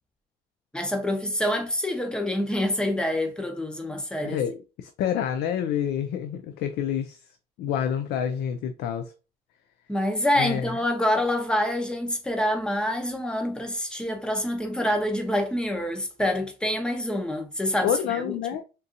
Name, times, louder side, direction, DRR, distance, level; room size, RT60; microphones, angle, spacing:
voice 1, 0.7-4.4 9.9-18.3, left 1 dB, 5° left, 0.8 m, -26 dB
voice 2, 4.8-7.2 7.6-9.1 10.4-10.7 17.8-18.6, left 9 dB, 75° left, 0.4 m, -28 dB
3.7 x 2.6 x 2.6 m
cardioid pair, 110°, 17 cm